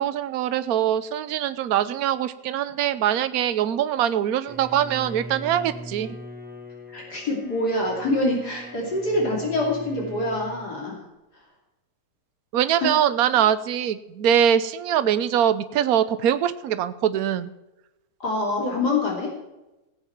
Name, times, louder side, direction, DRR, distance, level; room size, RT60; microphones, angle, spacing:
voice 1, 0.0-6.1 12.5-17.5, right 10 dB, 65° right, 13 dB, 1.2 m, -23 dB
Bowed string instrument, 4.5-10.7, right 1 dB, 5° right, 0.9 m, -40 dB
voice 2, 6.9-11.0 12.8-12.9 18.2-19.3, left 2 dB, 70° left, -2 dB, 3.5 m, -25 dB
17.5 x 8.4 x 4.5 m, 0.98 s
omnidirectional pair, 1.8 m